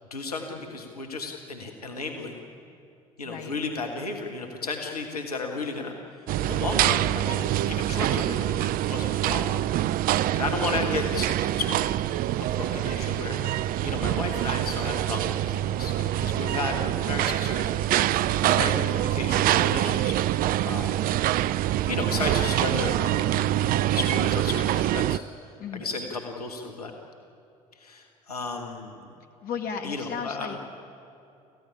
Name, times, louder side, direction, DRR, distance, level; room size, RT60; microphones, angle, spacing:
voice 1, 0.1-2.4 3.2-5.9 6.4-9.5 10.3-11.9 12.6-17.7 18.4-20.4 20.6-21.1 21.9-23.3 23.8-26.9 27.7-29.1 29.8-30.6, left 3 dB, 85° left, 2 dB, 1.6 m, -33 dB
sound 1, 6.3-25.2, right 13 dB, 50° right, 0.5 m, -25 dB
voice 2, 29.4-30.6, left 6 dB, 50° left, 5 dB, 2.1 m, -34 dB
26.5 x 15.5 x 9.9 m, 2.6 s
figure-of-eight pair, 55°, 19 cm